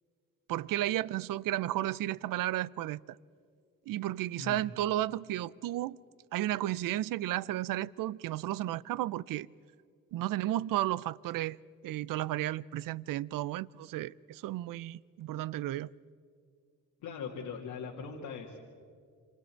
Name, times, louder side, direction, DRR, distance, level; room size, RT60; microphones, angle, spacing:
voice 1, 0.5-3.0 3.9-6.0 6.3-9.5 10.1-11.6 11.8-15.9, right 14 dB, 70° right, 0.6 m, -33 dB
voice 2, 17.0-18.6, left 6 dB, 85° left, 2.4 m, -40 dB
27.5 x 27.0 x 4.6 m
supercardioid pair, 70°, 34 cm